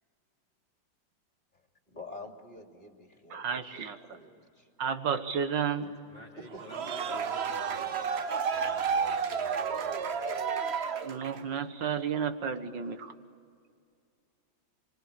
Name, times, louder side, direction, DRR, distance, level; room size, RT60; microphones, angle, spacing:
voice 1, 1.5-4.7 5.8-5.9 6.4-6.6, left 2 dB, 25° left, 3 dB, 3.0 m, -48 dB
voice 2, 3.3-4.0 4.8-5.9 11.0-13.1, right 7 dB, 70° right, 9 dB, 2.1 m, -32 dB
voice 3, 6.1-10.8, right 1 dB, 25° right, -5 dB, 3.9 m, -52 dB
sound 1, 6.5-11.5, right 6 dB, 50° right, 0.8 m, -31 dB
25.5 x 25.0 x 8.9 m, 2.2 s
omnidirectional pair, 2.1 m